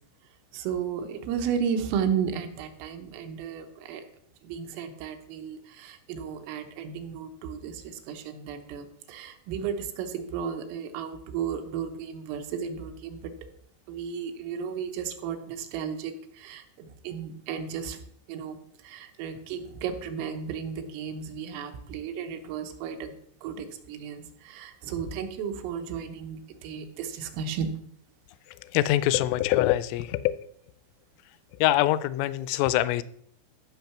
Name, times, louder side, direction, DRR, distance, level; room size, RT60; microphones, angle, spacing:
voice 1, 0.5-4.1 4.4-13.3 13.9-18.0 18.3-23.1 23.4-27.7, right 7 dB, 85° right, 6 dB, 3.7 m, -34 dB
voice 2, 28.7-30.4 31.6-33.0, left 14 dB, 85° left, 16 dB, 3.1 m, -24 dB
14.5 x 5.5 x 5.9 m, 0.69 s
omnidirectional pair, 5.7 m